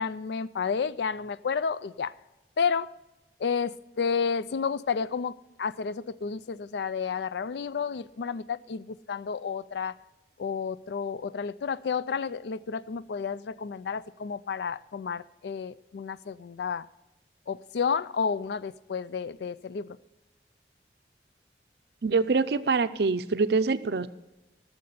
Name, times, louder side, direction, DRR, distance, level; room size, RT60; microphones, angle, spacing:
voice 1, 0.0-2.1 2.6-2.9 3.4-10.0 10.4-16.9 17.5-20.0, left 6 dB, 70° left, 17 dB, 0.4 m, -31 dB
voice 2, 22.0-24.1, right 4 dB, 65° right, 13 dB, 0.5 m, -25 dB
13.5 x 6.6 x 6.9 m, 0.99 s
head